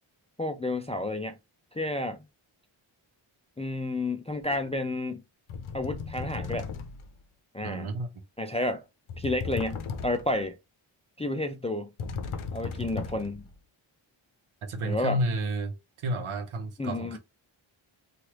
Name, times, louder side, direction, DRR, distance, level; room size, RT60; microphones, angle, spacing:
voice 1, 0.4-1.4 1.7-2.2 3.6-5.2 5.7-6.7 7.5-7.9 8.4-8.8 9.2-10.6 11.2-11.9 12.5-13.4 14.8-15.2 16.8-17.2, left 2 dB, 15° left, 0.3 m, -31 dB
sound 1, 4.5-4.7 5.5-7.2 9.1-10.4 12.0-13.5, left 5 dB, 80° left, 0.7 m, -36 dB
voice 2, 7.6-8.1 14.6-17.2, right 1 dB, 75° right, 0.9 m, -31 dB
3.2 x 2.4 x 2.9 m
wide cardioid pair, 95°, 50 cm